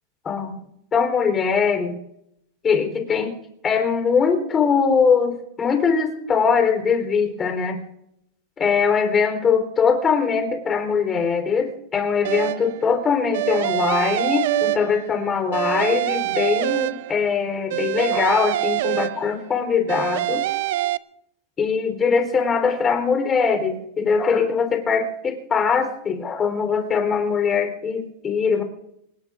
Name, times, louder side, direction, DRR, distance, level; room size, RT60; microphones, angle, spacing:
voice 1, 0.2-0.6 0.9-2.0 2.6-3.4 3.6-7.8 8.6-20.4 21.6-28.6, left 6 dB, 20° left, 5 dB, 3.6 m, -21 dB
sound 1, 12.2-12.8 13.3-15.2 15.5-17.3 17.7-19.5 19.9-21.0, right 16 dB, 70° right, 0.5 m, -25 dB
25.0 x 20.5 x 2.5 m, 0.76 s
supercardioid pair, 150°, 0 cm